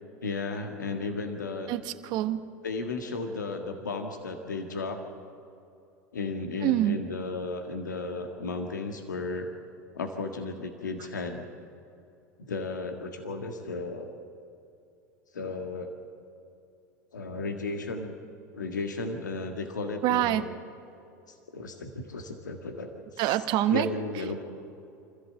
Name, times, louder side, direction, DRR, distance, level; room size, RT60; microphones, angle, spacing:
voice 1, 0.2-1.7 2.6-5.0 6.1-9.5 9.9-11.4 12.4-14.1 15.3-15.9 17.1-18.2 18.5-20.5 21.5-23.4 23.7-24.4, left 3 dB, 90° left, 4 dB, 1.7 m, -34 dB
voice 2, 1.7-2.4 6.6-7.0 20.0-20.4 23.2-23.9, right 14 dB, 50° right, 10 dB, 1.2 m, -25 dB
25.0 x 14.5 x 7.7 m, 2.6 s
hypercardioid pair, 85°, 10 cm